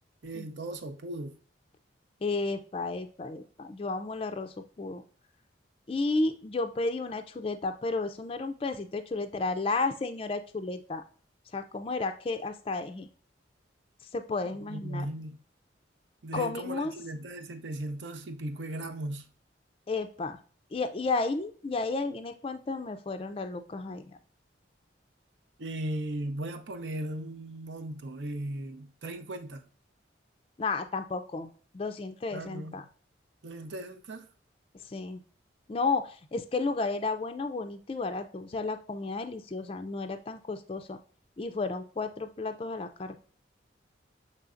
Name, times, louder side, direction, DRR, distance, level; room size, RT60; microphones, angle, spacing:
voice 1, 0.2-1.4 14.5-15.4 16.2-19.3 25.6-29.7 32.3-32.7 33.4-34.3, right 1 dB, 70° right, 0.6 m, -37 dB
voice 2, 2.2-5.0 5.9-11.0 11.5-13.1 14.1-15.1 16.3-16.9 19.9-20.4 20.7-24.2 30.6-32.8 34.9-35.2 35.7-41.0 41.4-43.2, left 3 dB, 30° left, 0.4 m, -32 dB
6.8 x 3.2 x 2.5 m
head